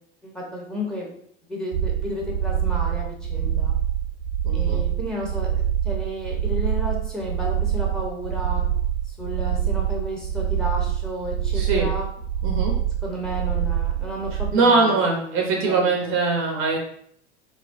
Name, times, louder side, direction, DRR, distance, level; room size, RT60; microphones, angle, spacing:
voice 1, 0.2-1.1 1.5-3.7 4.5-5.5 5.8-8.6 9.0-12.1 13.0-16.2, equal, ahead, -3 dB, 1.0 m, -32 dB
sound 1, 1.7-14.5, right 10 dB, 65° right, 0.5 m, -25 dB
voice 2, 4.4-4.8 11.5-11.9 12.4-12.8 14.5-16.8, right 3 dB, 40° right, 1 dB, 0.9 m, -22 dB
4.2 x 2.2 x 2.6 m, 0.66 s
hypercardioid pair, 90°, 33 cm